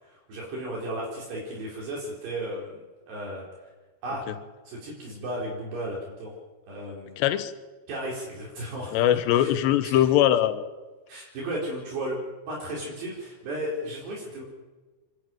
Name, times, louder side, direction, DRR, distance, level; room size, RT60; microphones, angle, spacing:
voice 1, 0.0-3.7 4.0-4.2 4.7-6.4 6.7-7.2 7.9-9.0 9.3-9.5 9.8-10.1 11.1-14.4, right 1 dB, 65° right, -3 dB, 6.5 m, -35 dB
voice 2, 7.2-7.5 8.9-10.7, left 11 dB, 75° left, 9 dB, 3.2 m, -21 dB
27.0 x 12.0 x 9.1 m, 1.2 s
omnidirectional pair, 5.1 m